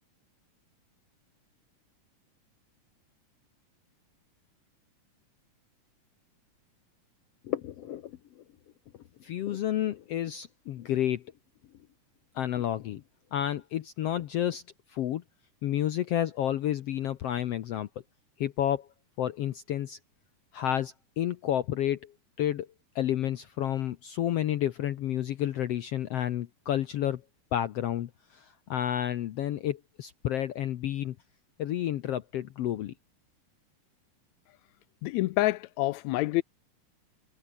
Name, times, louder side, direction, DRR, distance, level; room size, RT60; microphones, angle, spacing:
voice 1, 7.4-8.4 9.2-11.2 12.3-13.0 13.3-14.6 14.9-15.2 15.6-17.9 18.4-18.9 19.2-20.0 20.5-22.1 22.4-22.7 22.9-27.2 27.5-31.2 31.6-32.9, left 11 dB, 70° left, 1.5 m, -30 dB
voice 2, 35.0-36.4, left 18 dB, 90° left, 1.6 m, -27 dB
omnidirectional pair, 3.8 m